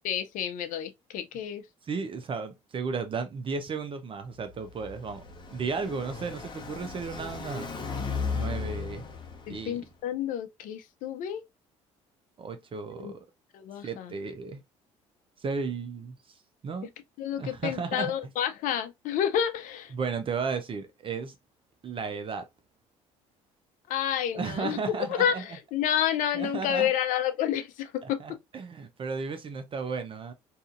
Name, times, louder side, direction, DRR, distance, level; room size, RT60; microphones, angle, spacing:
voice 1, 0.0-1.6 9.5-11.4 13.0-13.1 13.5-14.1 17.2-19.9 23.9-24.8 25.1-28.2, left 9 dB, 65° left, 0.5 m, -29 dB
voice 2, 1.9-5.2 5.5-7.7 8.3-9.0 9.5-9.8 12.4-13.2 13.8-14.6 15.4-16.1 16.6-16.9 17.4-18.1 19.9-21.3 21.8-22.4 24.3-25.4 26.3-26.9 28.0-30.3, right 5 dB, 40° right, 0.5 m, -34 dB
Car passing by, 4.3-9.9, left 5 dB, 30° left, 0.9 m, -36 dB
2.7 x 2.4 x 2.4 m
supercardioid pair, 70°, 14 cm